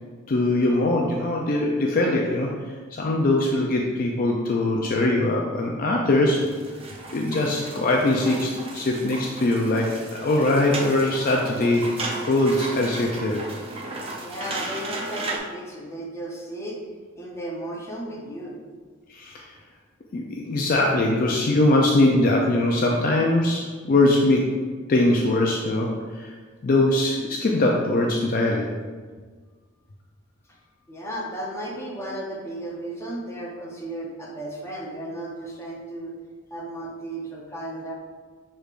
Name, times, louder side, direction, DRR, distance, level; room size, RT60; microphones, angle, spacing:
voice 1, 0.3-2.5 2.9-6.5 7.1-11.9 12.3-13.4 19.1-19.4 20.1-24.6 24.9-26.3 26.6-28.7, left 2 dB, 45° left, -1 dB, 0.4 m, -22 dB
sound 1, 6.3-15.4, right 2 dB, 30° right, 0.5 m, -35 dB
voice 2, 14.1-16.8 17.1-18.5 30.5-36.2 36.5-37.9, right 1 dB, 15° left, -3 dB, 0.7 m, -34 dB
6.3 x 3.3 x 2.4 m, 1.5 s
head